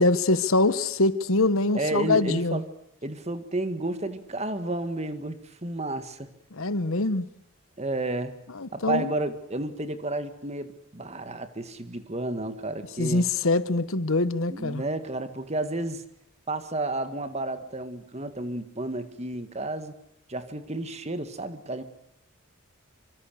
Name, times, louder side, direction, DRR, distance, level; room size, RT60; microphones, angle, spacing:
voice 1, 0.0-2.6 6.5-7.3 8.5-9.1 13.0-14.8, left 2 dB, 70° left, 1.2 m, -24 dB
voice 2, 1.7-2.6 3.0-6.3 7.8-8.4 8.7-13.3 14.5-16.0 16.5-19.9 20.3-21.8, right 2 dB, 30° right, 1.9 m, -31 dB
25.5 x 25.0 x 6.7 m
head